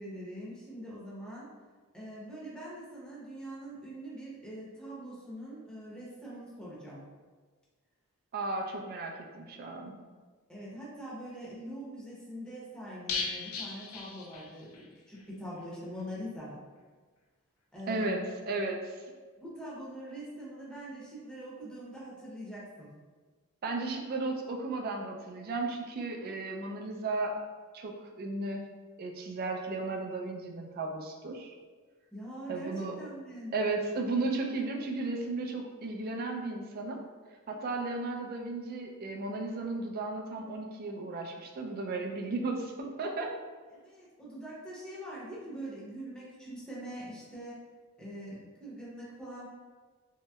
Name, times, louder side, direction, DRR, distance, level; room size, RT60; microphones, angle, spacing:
voice 1, 0.0-1.5 1.9-7.1 10.5-16.6 17.7-18.3 19.4-22.9 32.1-33.5 43.7-47.6 48.0-49.5, equal, 5° left, -7 dB, 0.7 m, -43 dB
voice 2, 8.3-9.9 17.9-18.2 18.5-19.0 23.6-27.3 27.7-28.6 29.0-31.5 32.5-33.0 33.5-37.0 37.5-43.3, right 3 dB, 45° right, 2 dB, 0.4 m, -34 dB
sound 1, 13.1-14.9 15.1-15.2 15.6-15.7, left 4 dB, 80° left, 0.4 m, -37 dB
3.0 x 2.8 x 2.2 m, 1.4 s
head